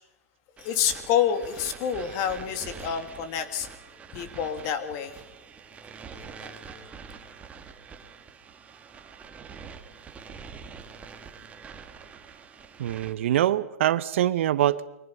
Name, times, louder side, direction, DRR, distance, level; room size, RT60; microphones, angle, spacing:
voice 1, 0.6-3.7 4.1-5.2 6.1-6.9, left 8 dB, 40° left, 8 dB, 3.0 m, -28 dB
sound 1, 0.6-13.1, right 6 dB, 15° right, 2.2 m, -45 dB
voice 2, 12.8-14.9, right 12 dB, 55° right, 15 dB, 1.1 m, -24 dB
29.0 x 24.0 x 5.7 m, 0.88 s
hypercardioid pair, 115°, 8 cm